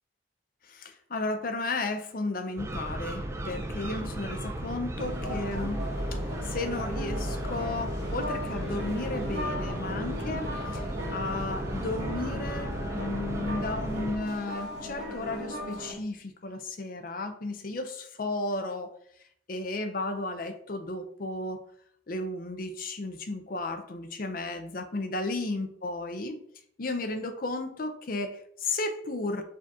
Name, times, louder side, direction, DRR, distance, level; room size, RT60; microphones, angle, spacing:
voice 1, 0.6-5.8 6.1-10.8 11.1-18.9 19.5-21.6 22.1-26.4 26.8-29.4, left 2 dB, 45° left, 7 dB, 0.5 m, -34 dB
sound 1, 2.6-14.2, right 1 dB, 15° right, 0.4 m, -35 dB
sound 2, 5.0-15.9, left 1 dB, 65° right, 1.7 m, -37 dB
5.0 x 2.8 x 3.5 m, 0.66 s
head